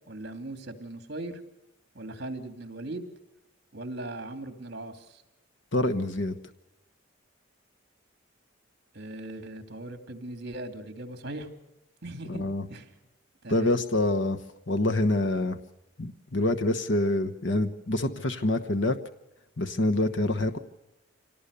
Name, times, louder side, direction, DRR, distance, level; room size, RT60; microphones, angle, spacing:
voice 1, 0.1-1.4 1.9-3.1 3.7-5.2 8.9-11.5 12.0-12.4 12.7-12.9 13.4-13.8 20.2-20.6, right 2 dB, 55° right, 7 dB, 2.8 m, -39 dB
voice 2, 5.7-6.3 12.3-12.7 13.5-14.4 14.7-15.6 16.0-19.0 19.6-20.6, left 1 dB, 65° left, 7 dB, 1.2 m, -26 dB
26.0 x 18.5 x 6.9 m, 0.92 s
head